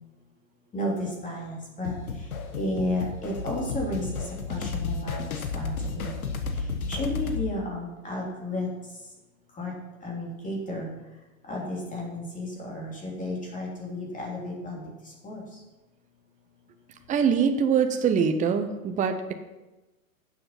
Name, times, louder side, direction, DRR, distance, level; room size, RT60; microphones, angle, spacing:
voice 1, 0.7-1.9 2.5-4.2 4.5-6.1 6.9-8.7 9.6-9.7 10.0-10.9 11.5-14.9 15.2-15.4, left 1 dB, 20° left, -3 dB, 3.1 m, -32 dB
sound 1, 1.9-7.5, left 4 dB, 85° left, 1.5 m, -32 dB
voice 2, 17.1-19.3, right 6 dB, 20° right, 7 dB, 0.8 m, -23 dB
11.0 x 7.4 x 5.8 m, 1.1 s
hypercardioid pair, 115°, 41 cm